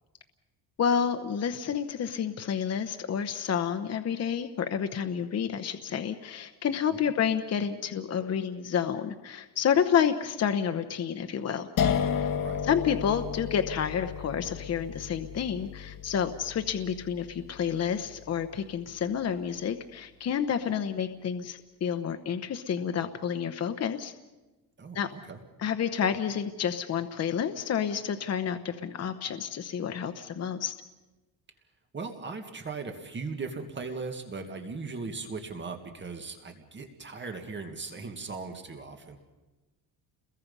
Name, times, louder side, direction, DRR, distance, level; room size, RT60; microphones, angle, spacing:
voice 1, 0.8-11.7 12.1-12.3 12.6-24.1 24.9-25.1 25.6-30.7, left 8 dB, 40° left, 9 dB, 1.0 m, -29 dB
sound 1, 11.8-18.7, left 7 dB, 60° left, 1.4 m, -33 dB
voice 2, 24.8-25.4 31.9-39.2, right 4 dB, 30° right, 5 dB, 2.0 m, -38 dB
30.0 x 22.0 x 5.5 m, 1.1 s
cardioid pair, 140°, 38 cm